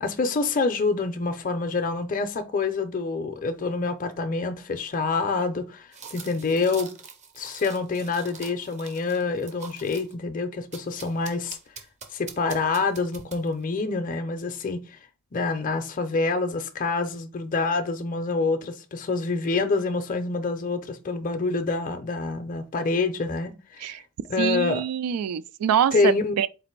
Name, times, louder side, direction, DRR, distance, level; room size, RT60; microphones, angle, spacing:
voice 1, 0.0-6.9 7.4-11.6 12.1-15.0 15.3-24.0 24.3-24.8 25.9-26.4, left 3 dB, 35° left, 0.5 m, -27 dB
sound 1, 5.9-10.1 10.7-13.6, right 5 dB, 30° right, 0.5 m, -44 dB
voice 2, 24.4-26.5, right 8 dB, 85° right, 0.3 m, -25 dB
4.0 x 2.5 x 4.4 m
head